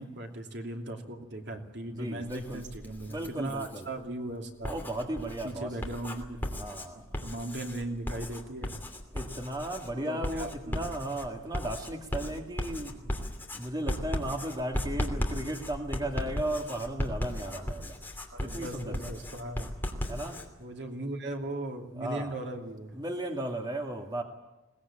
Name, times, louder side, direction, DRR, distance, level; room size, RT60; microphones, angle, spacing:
voice 1, 0.0-4.7 5.4-6.4 6.9-8.7 10.0-10.8 18.3-19.7 20.6-23.0, right 1 dB, 60° right, 3 dB, 2.9 m, -38 dB
voice 2, 1.9-2.6 3.1-3.9 4.7-5.7 6.6-7.0 9.1-13.0 13.5-17.9 18.5-19.1 20.1-20.4 22.0-22.3 22.9-24.2, right 1 dB, 20° right, 3 dB, 2.0 m, -35 dB
Writing, 2.2-3.8 4.5-20.5, left 1 dB, 10° left, 2.8 m, -36 dB
21.5 x 19.5 x 8.7 m, 1.0 s
head